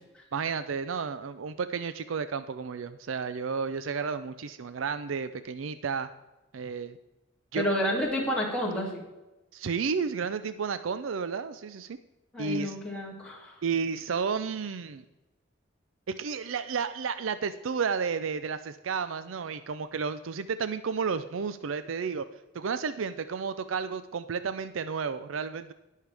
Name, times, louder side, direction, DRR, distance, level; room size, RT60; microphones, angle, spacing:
voice 1, 0.3-6.1 6.5-7.0 7.5-7.7 9.5-12.0 12.4-12.8 13.6-15.0 16.1-22.3 22.5-25.7, right 5 dB, 90° right, 12 dB, 0.5 m, -32 dB
voice 2, 7.5-9.0 12.3-13.6, equal, 5° left, -4 dB, 2.6 m, -30 dB
19.0 x 6.5 x 3.4 m, 1.1 s
head